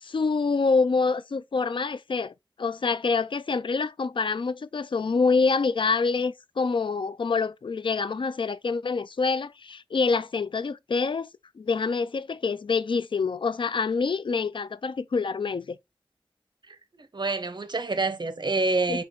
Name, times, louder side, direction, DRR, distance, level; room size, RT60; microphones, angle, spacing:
voice 1, 0.0-2.3 2.6-11.3 11.6-15.8 18.9-19.0, left 4 dB, 75° left, 0.3 m, -26 dB
voice 2, 16.7-19.0, right 3 dB, 60° right, 0.7 m, -27 dB
4.3 x 2.9 x 3.7 m
wide cardioid pair, 45°, 9 cm